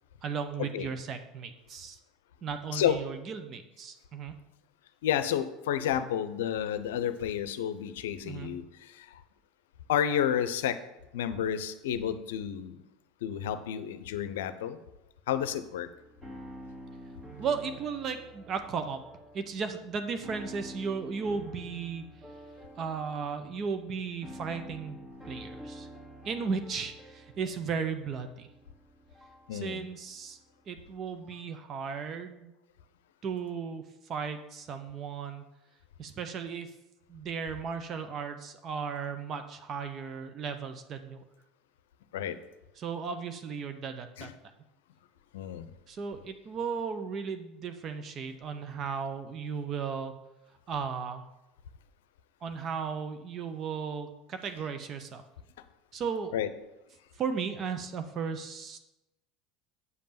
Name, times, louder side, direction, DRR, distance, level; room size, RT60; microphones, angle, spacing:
voice 1, 0.2-2.0 2.4-4.3 8.2-8.5 17.4-19.0 19.3-22.0 22.8-25.0 25.2-25.9 26.2-28.5 29.5-30.4 30.7-32.5 33.2-35.4 36.0-36.7 37.1-41.2 42.8-44.3 45.9-50.1 50.7-51.2 52.4-55.3 55.9-56.3 57.2-58.8, right 5 dB, 45° right, 8 dB, 0.8 m, -35 dB
voice 2, 5.0-9.2 9.9-10.8 11.1-12.8 13.2-14.8 15.3-15.9 29.5-29.8 42.1-42.4 44.2-44.3 45.3-45.7 56.3-56.5, left 9 dB, 75° left, 12 dB, 0.6 m, -31 dB
sound 1, 15.3-31.6, right 1 dB, 25° right, 2.1 m, -49 dB
8.1 x 5.2 x 5.8 m, 0.95 s
hypercardioid pair, 80°, 0 cm